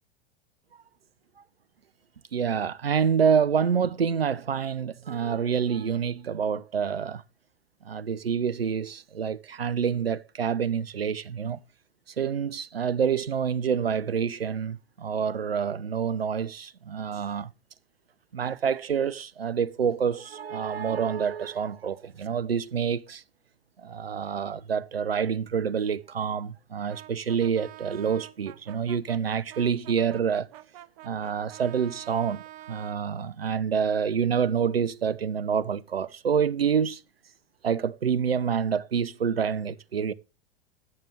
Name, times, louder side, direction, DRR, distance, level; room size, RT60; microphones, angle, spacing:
voice 1, 2.3-7.2 7.8-11.6 12.2-17.5 18.3-23.2 23.8-30.5 31.0-32.4 32.7-37.0 37.6-40.1, right 7 dB, 85° right, 0.5 m, -27 dB
Brass instrument, 26.9-33.0, right 14 dB, 40° right, 0.6 m, -47 dB
9.4 x 6.7 x 3.5 m
figure-of-eight pair, 90°, 29 cm